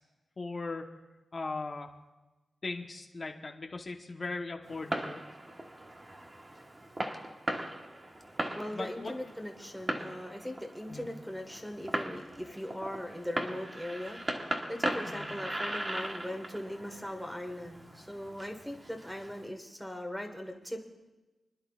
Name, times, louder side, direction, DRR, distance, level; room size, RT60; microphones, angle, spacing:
voice 1, 0.4-0.9 1.3-1.9 2.6-5.2 8.7-9.1 10.9-11.1 15.0-15.3, left 3 dB, 40° left, 2 dB, 1.0 m, -38 dB
Fireworks, 4.6-19.5, right 1 dB, 25° right, 1.2 m, -39 dB
voice 2, 8.5-20.8, left 1 dB, ahead, 4 dB, 1.4 m, -40 dB
29.5 x 10.5 x 2.4 m, 1.1 s
wide cardioid pair, 100°, 0 cm